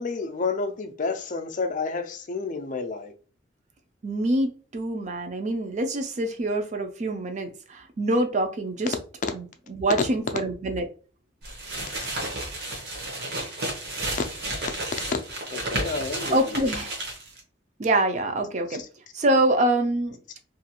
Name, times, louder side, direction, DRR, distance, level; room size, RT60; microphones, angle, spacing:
voice 1, 0.0-3.1 14.1-14.3 15.5-16.7 18.7-18.8, left 4 dB, 40° left, 0.4 m, -30 dB
voice 2, 4.0-8.9 9.3-10.8 16.3-16.9 17.8-18.8 19.1-20.2, right 1 dB, 40° right, 0.4 m, -25 dB
sound 1, 11.4-17.4, right 1 dB, 55° right, 0.8 m, -32 dB
2.5 x 2.3 x 2.8 m
head